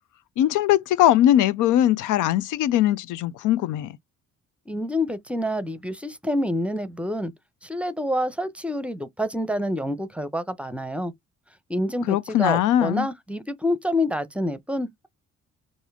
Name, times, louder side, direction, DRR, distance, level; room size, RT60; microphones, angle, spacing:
voice 1, 0.4-3.9 12.1-13.1, left 12 dB, 85° left, 0.5 m, -20 dB
voice 2, 4.7-7.3 7.6-11.1 11.7-15.1, left 1 dB, 5° right, 0.7 m, -27 dB
4.9 x 2.6 x 3.5 m
cardioid pair, 90°, 30 cm